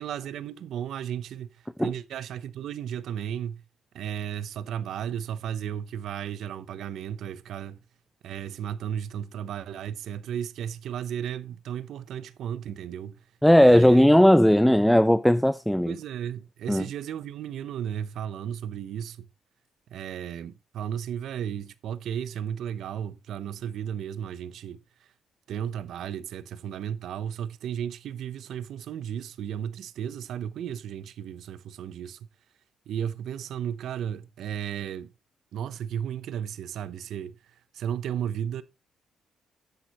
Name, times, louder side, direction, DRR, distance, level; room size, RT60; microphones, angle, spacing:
voice 1, 0.0-1.5 1.8-3.6 3.9-7.8 8.2-13.2 13.6-14.0 15.9-19.3 19.9-24.8 25.5-32.2 32.9-35.1 35.5-37.3 37.7-38.6, right 9 dB, 75° right, 0.7 m, -34 dB
voice 2, 13.4-15.9 16.7-16.9, equal, 5° left, 0.5 m, -17 dB
11.0 x 8.3 x 3.0 m
supercardioid pair, 60°, 0 cm